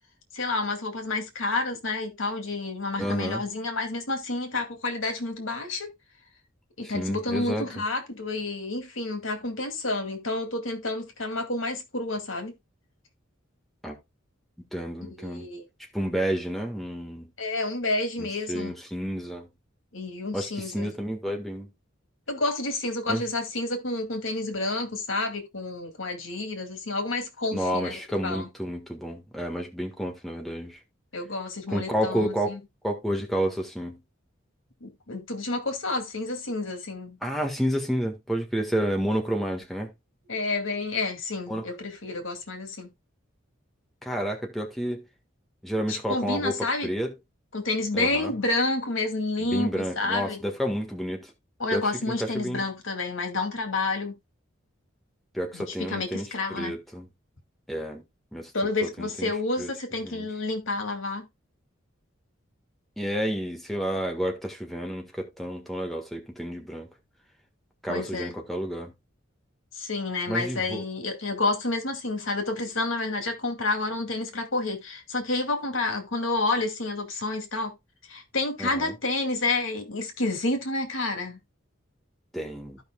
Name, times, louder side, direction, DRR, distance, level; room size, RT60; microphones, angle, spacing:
voice 1, 0.3-5.9 6.8-12.5 15.0-15.7 17.4-18.7 19.9-20.9 22.3-28.5 31.1-32.6 34.8-37.2 40.3-42.9 45.9-46.9 47.5-50.4 51.6-54.1 55.5-56.8 58.5-61.2 67.9-68.3 69.7-77.7 78.1-81.4, left 2 dB, 75° left, 2.2 m, -29 dB
voice 2, 3.0-3.4 6.8-7.6 13.8-14.0 14.7-15.5 15.9-17.3 18.2-19.5 20.3-21.7 23.1-23.2 27.5-30.8 31.7-32.6 32.8-34.0 37.2-39.9 41.5-41.6 44.0-45.0 45.6-47.1 47.9-48.3 49.4-51.3 51.7-52.6 55.3-57.1 57.7-58.0 58.3-58.5 58.8-59.3 59.6-59.7 60.0-60.3 63.0-66.9 67.8-68.9 70.3-70.8 78.6-78.9 82.3-82.8, equal, ahead, 1.6 m, -30 dB
15.0 x 5.4 x 2.3 m
head